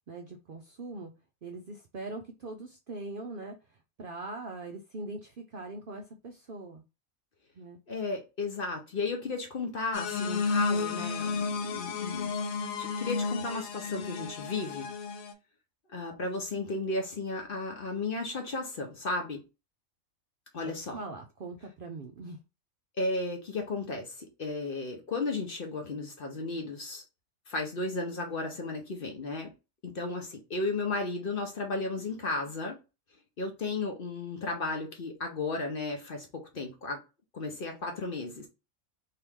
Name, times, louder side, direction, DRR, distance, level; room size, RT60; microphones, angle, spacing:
voice 1, 0.1-1.1 1.4-3.6 4.0-6.8 7.6-7.8 20.6-22.4, right 2 dB, 65° right, 0.5 m, -41 dB
voice 2, 7.9-12.4 12.8-14.9 15.9-19.4 20.5-21.0 23.0-27.0 27.5-29.5 29.8-32.8 33.4-37.0 37.3-38.5, left 3 dB, 50° left, 0.8 m, -34 dB
sound 1, 9.9-15.3, left 4 dB, 85° left, 1.1 m, -32 dB
3.0 x 2.8 x 3.5 m
omnidirectional pair, 1.4 m